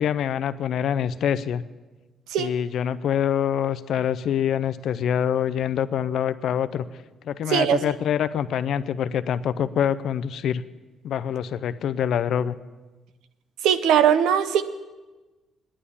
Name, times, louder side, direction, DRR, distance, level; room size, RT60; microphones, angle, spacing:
voice 1, 0.0-1.6 2.4-6.9 7.2-10.6 11.0-12.5, left 9 dB, 70° left, 13 dB, 0.5 m, -25 dB
voice 2, 7.5-7.8 13.6-14.6, right 9 dB, 90° right, 12 dB, 0.7 m, -19 dB
10.0 x 9.4 x 8.4 m, 1.2 s
cardioid pair, 90°, 0 cm